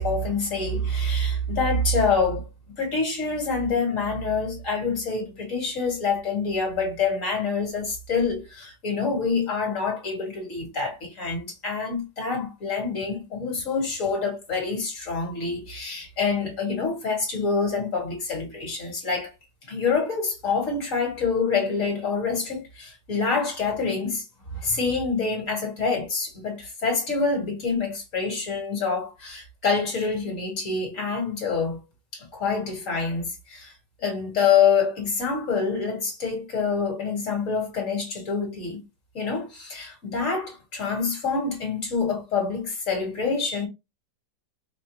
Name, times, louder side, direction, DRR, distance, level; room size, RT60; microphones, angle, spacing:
voice 1, 0.0-2.5 2.8-19.3 19.7-24.2 24.5-31.8 32.1-33.7 34.0-38.8 39.1-43.7, left 4 dB, 50° left, 1.8 m, -26 dB
5.4 x 2.2 x 3.0 m
omnidirectional pair, 1.8 m